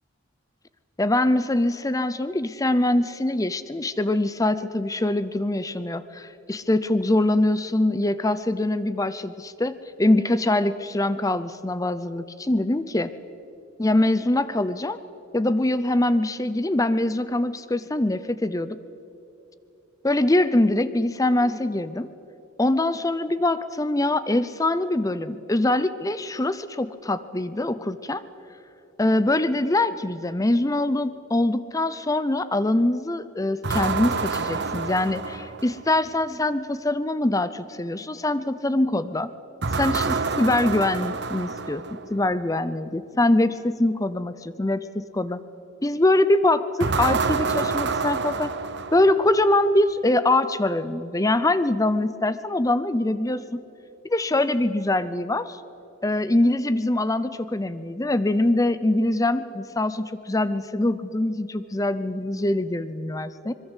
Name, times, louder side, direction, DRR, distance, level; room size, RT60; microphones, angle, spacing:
voice 1, 1.0-13.1 13.8-15.0 15.3-18.8 20.0-22.1 22.6-28.2 29.0-39.3 39.7-41.8 42.1-45.4 45.8-48.5 48.9-53.6 54.0-55.6 56.0-63.5, left 1 dB, 15° left, 14 dB, 0.6 m, -23 dB
sound 1, 33.6-36.0 39.6-42.1 46.8-49.4, right 4 dB, 60° right, 1.0 m, -27 dB
25.5 x 22.0 x 8.2 m, 2.9 s
head